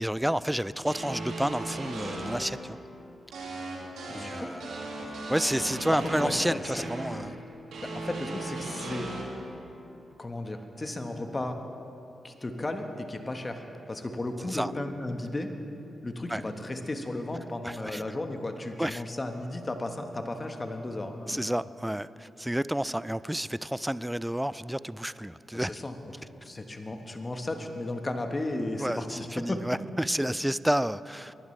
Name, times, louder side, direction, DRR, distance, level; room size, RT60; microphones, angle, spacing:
voice 1, 0.0-2.8 4.1-5.0 5.3-7.4 14.4-14.7 16.3-16.4 17.6-18.0 18.8-19.0 21.3-25.8 28.8-31.3, equal, 5° right, 17 dB, 0.3 m, -30 dB
sound 1, 0.8-2.4 3.3-7.1 7.7-9.2, right 2 dB, 80° right, 2.2 m, -36 dB
voice 2, 4.1-4.6 6.2-6.3 7.8-9.1 10.2-11.6 12.2-15.5 16.0-21.4 25.5-29.6, left 2 dB, 30° left, 5 dB, 1.4 m, -34 dB
21.0 x 11.0 x 3.3 m, 2.9 s
supercardioid pair, 50°, 0 cm